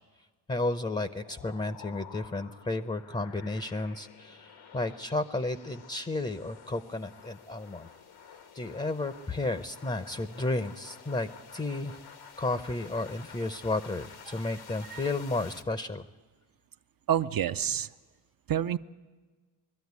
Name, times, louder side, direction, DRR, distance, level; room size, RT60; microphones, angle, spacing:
voice 1, 0.5-7.9 8.5-12.0 12.4-16.0, left 2 dB, 15° left, 12 dB, 0.7 m, -32 dB
sound 1, 0.9-15.6, left 6 dB, 85° left, 1.9 m, -50 dB
voice 2, 17.1-17.9 18.5-18.8, right 10 dB, 45° right, 10 dB, 0.6 m, -28 dB
21.5 x 13.0 x 9.6 m, 1.3 s
cardioid pair, 80°, 49 cm